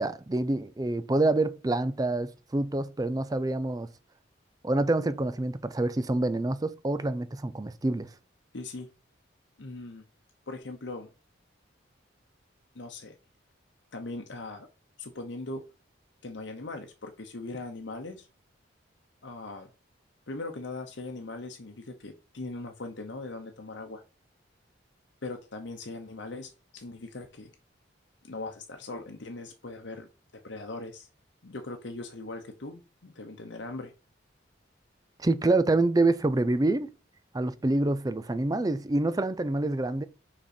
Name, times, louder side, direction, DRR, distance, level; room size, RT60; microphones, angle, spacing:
voice 1, 0.0-3.9 4.6-8.1 35.2-36.9 37.3-40.1, right 2 dB, 20° right, 0.4 m, -26 dB
voice 2, 8.5-8.9 9.6-10.0 10.5-11.1 12.7-13.2 13.9-14.7 15.0-15.6 16.2-18.3 19.2-19.7 20.3-24.0 25.2-27.5 28.2-30.1 30.4-31.1 31.4-33.9, left 2 dB, 65° left, 0.9 m, -40 dB
5.5 x 5.1 x 4.3 m
head